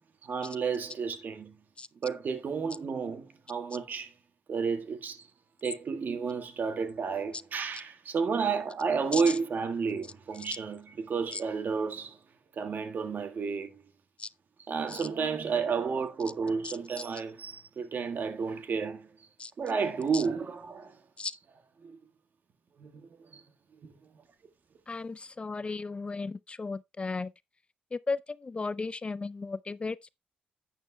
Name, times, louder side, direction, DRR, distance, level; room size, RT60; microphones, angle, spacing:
voice 1, 0.2-1.5 2.0-4.1 4.5-5.3 5.6-12.2 12.5-13.8 14.7-19.1 19.6-21.0 21.8-22.0 22.8-23.4 23.8-23.9, right 5 dB, 60° right, 1.6 m, -31 dB
voice 2, 24.9-27.3 27.9-30.1, left 3 dB, 30° left, 0.4 m, -35 dB
11.0 x 9.0 x 2.2 m
supercardioid pair, 60°, 4 cm